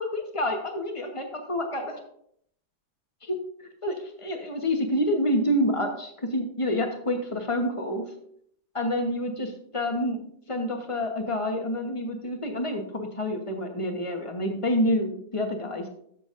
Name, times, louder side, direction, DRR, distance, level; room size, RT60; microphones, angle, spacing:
voice 1, 0.0-2.0 3.2-3.4 3.8-8.0 8.7-10.2 10.5-15.9, left 1 dB, 20° left, 3 dB, 0.9 m, -28 dB
13.5 x 7.1 x 2.5 m, 0.67 s
omnidirectional pair, 2.0 m